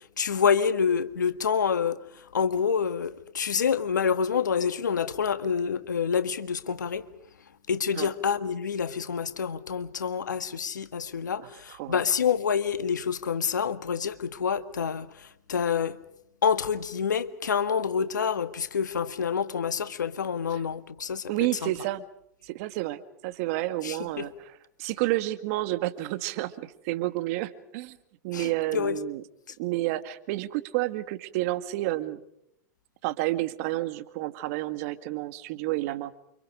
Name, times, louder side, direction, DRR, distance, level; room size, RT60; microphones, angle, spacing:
voice 1, 0.2-2.0 2.3-7.1 7.7-15.1 15.5-16.0 16.4-21.2 21.6-21.7 23.8-24.3 28.3-29.0, left 6 dB, 85° left, 1.7 m, -27 dB
voice 2, 11.4-12.0 20.5-20.6 21.3-22.0 22.4-24.3 24.8-28.0 28.2-29.2 29.6-32.2 33.0-36.2, right 17 dB, 55° right, 2.0 m, -30 dB
29.5 x 26.0 x 5.1 m
hypercardioid pair, 105°, 10 cm